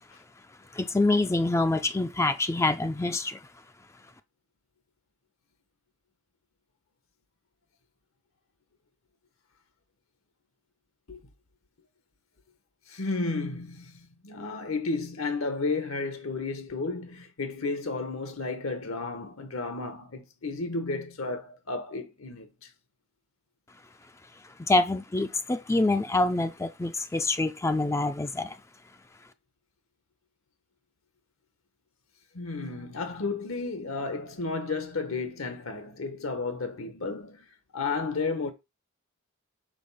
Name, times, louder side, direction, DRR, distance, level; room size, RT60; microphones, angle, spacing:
voice 1, 0.7-3.5 24.4-28.6, left 2 dB, 15° left, 0.4 m, -26 dB
voice 2, 12.9-22.7 32.3-37.4 37.7-38.5, left 3 dB, 70° left, 1.1 m, -33 dB
5.1 x 4.1 x 5.5 m
head